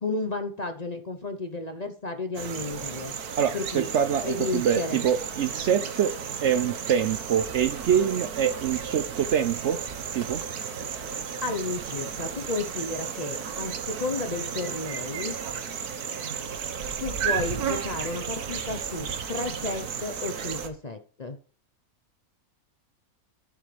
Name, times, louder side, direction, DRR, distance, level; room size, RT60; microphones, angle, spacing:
voice 1, 0.0-3.1 3.5-3.8 4.2-5.0 11.4-15.3 17.0-21.4, left 3 dB, 35° left, 0.8 m, -32 dB
sound 1, 2.4-20.7, right 7 dB, 85° right, 1.7 m, -33 dB
voice 2, 3.4-6.1 6.4-9.8 10.1-10.4, right 8 dB, 60° right, 0.8 m, -25 dB
11.5 x 8.5 x 3.3 m
omnidirectional pair, 1.6 m